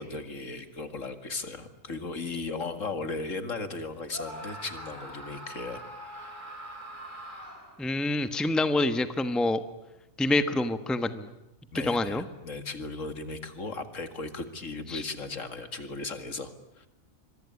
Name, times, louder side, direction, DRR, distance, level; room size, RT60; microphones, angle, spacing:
voice 1, 0.0-6.8 11.7-16.9, left 3 dB, 65° left, 9 dB, 2.4 m, -37 dB
Screaming, 4.1-7.9, right 1 dB, 35° right, 4.7 m, -42 dB
voice 2, 7.8-9.6 10.2-11.3 11.8-12.2 14.9-15.0, left 2 dB, ahead, 10 dB, 1.1 m, -26 dB
25.5 x 23.0 x 9.8 m, 0.91 s
omnidirectional pair, 1.5 m